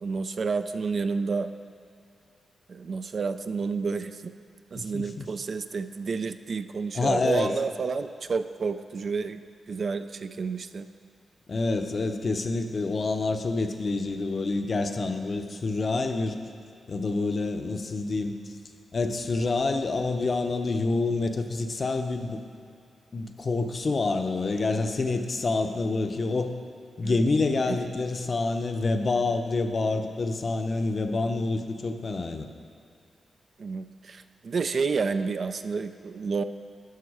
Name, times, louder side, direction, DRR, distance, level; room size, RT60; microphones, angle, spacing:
voice 1, 0.0-1.5 2.7-4.3 4.7-9.4 9.7-10.9 27.0-27.2 27.7-27.8 33.6-36.4, right 4 dB, 50° right, 10 dB, 0.3 m, -30 dB
voice 2, 4.7-5.3 6.9-7.5 11.5-16.4 16.9-18.4 18.9-22.4 23.1-26.5 27.0-32.5, left 3 dB, 40° left, 6 dB, 0.6 m, -27 dB
11.5 x 5.7 x 4.8 m, 2.5 s
cardioid pair, 95°, 0 cm